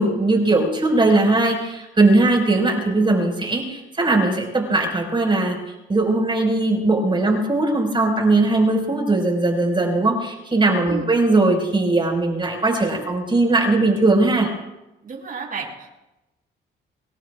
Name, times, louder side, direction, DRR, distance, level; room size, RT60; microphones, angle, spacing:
voice 1, 0.0-5.6 5.9-14.5, right 2 dB, 25° right, 2 dB, 4.9 m, -19 dB
voice 2, 15.0-16.0, right 5 dB, 45° right, -1 dB, 6.7 m, -32 dB
25.5 x 21.5 x 2.4 m, 0.96 s
cardioid pair, 90°, 20 cm